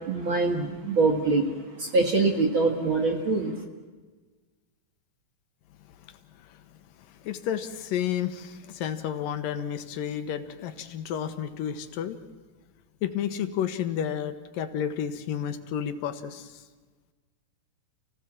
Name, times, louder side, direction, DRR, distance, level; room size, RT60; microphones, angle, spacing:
voice 1, 0.0-3.6, right 3 dB, 45° right, 4 dB, 1.9 m, -24 dB
voice 2, 7.2-12.2 13.0-16.6, left 9 dB, 75° left, 10 dB, 2.7 m, -31 dB
29.5 x 16.5 x 7.4 m, 1.3 s
omnidirectional pair, 4.2 m